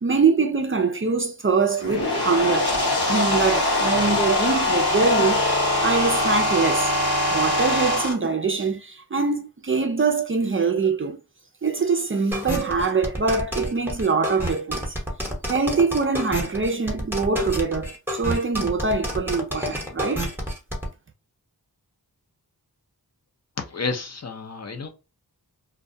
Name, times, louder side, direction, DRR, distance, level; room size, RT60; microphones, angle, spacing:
voice 1, 0.0-2.8 3.1-5.4 5.8-6.9 7.3-11.2 11.6-14.8 15.5-20.3, right 4 dB, 35° right, 0.4 m, -23 dB
sound 1, 1.7-8.1, left 1 dB, 80° left, 1.1 m, -22 dB
sound 2, 12.3-20.9, equal, 5° right, 0.8 m, -29 dB
voice 2, 23.6-24.9, left 4 dB, 40° left, 0.5 m, -30 dB
2.2 x 2.2 x 2.6 m
wide cardioid pair, 45°, 39 cm